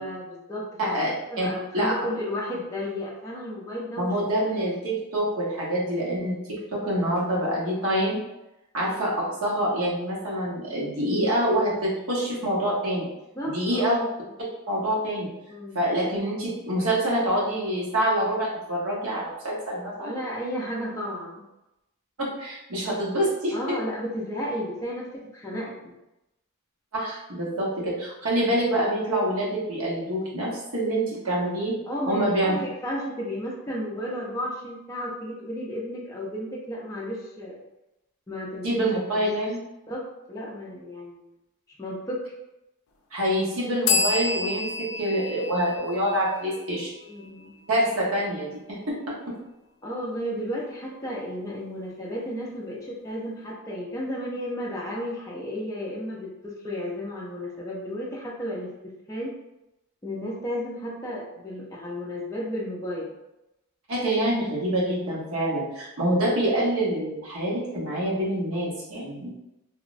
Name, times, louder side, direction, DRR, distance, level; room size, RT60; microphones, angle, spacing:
voice 1, 0.0-1.0 1.3-4.1 8.9-9.0 13.4-14.0 15.5-15.8 20.0-21.5 23.5-25.9 31.9-37.6 38.3-38.8 39.2-39.5 39.9-41.3 41.8-42.3 47.0-47.5 49.8-59.3 60.0-63.1, equal, 15° left, -5 dB, 0.4 m, -33 dB
voice 2, 0.8-1.5 1.7-1.9 4.0-8.2 8.7-13.1 13.4-14.0 14.7-15.3 15.7-20.1 22.2-23.8 26.9-31.8 32.1-32.6 38.6-39.6 43.1-46.9 47.7-49.4 63.9-69.3, right 1 dB, 80° right, -5 dB, 0.9 m, -26 dB
sound 1, 43.9-47.4, left 4 dB, 80° left, 0.4 m, -29 dB
3.3 x 2.0 x 2.5 m, 0.92 s
head